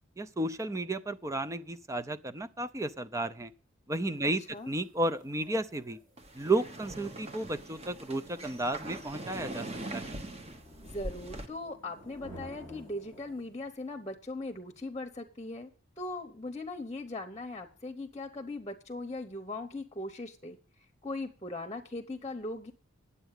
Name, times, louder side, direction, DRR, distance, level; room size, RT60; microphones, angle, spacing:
voice 1, 0.2-3.5 3.9-6.0 6.3-9.7 9.9-10.2, right 2 dB, 15° right, 0.5 m, -33 dB
sound 1, 4.4-13.8, equal, 70° right, 4.4 m, -52 dB
sound 2, 6.2-11.5, right 1 dB, 30° right, 1.1 m, -42 dB
voice 2, 10.8-15.7 16.0-20.6 21.0-22.7, left 2 dB, 20° left, 0.9 m, -39 dB
10.0 x 8.1 x 6.5 m
head